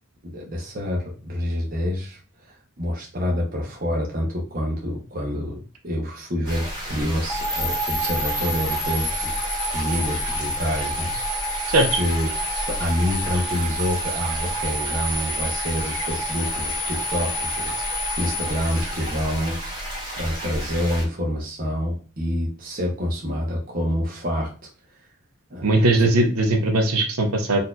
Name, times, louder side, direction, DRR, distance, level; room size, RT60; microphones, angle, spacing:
voice 1, 0.2-11.1 11.5-11.6 11.9-12.3 12.7-19.6 19.8-24.7 25.5-25.7 26.0-26.1, left 1 dB, 40° right, -2 dB, 0.7 m, -27 dB
sound 1, 6.4-21.0, equal, 20° right, 1.4 m, -32 dB
sound 2, 7.3-19.5, equal, 5° left, 0.4 m, -29 dB
voice 2, 11.7-12.0 25.6-27.6, right 2 dB, 85° right, 4 dB, 0.7 m, -19 dB
4.1 x 2.6 x 2.3 m, 0.38 s
head